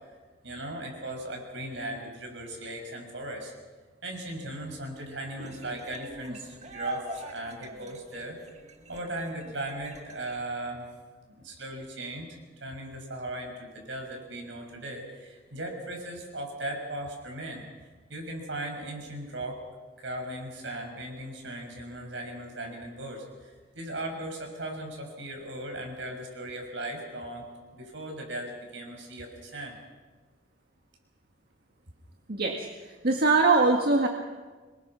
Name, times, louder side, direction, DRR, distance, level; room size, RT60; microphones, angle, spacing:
voice 1, 0.4-3.5 4.0-8.4 8.9-10.9 11.3-17.6 18.1-19.6 20.0-27.4 27.7-29.8, right 1 dB, 75° right, 2 dB, 6.1 m, -38 dB
sound 1, 5.4-10.5, right 1 dB, 40° right, 1.8 m, -42 dB
voice 2, 32.3-32.7 33.0-34.1, right 3 dB, 55° right, 2 dB, 1.8 m, -22 dB
26.5 x 22.0 x 6.1 m, 1.4 s
head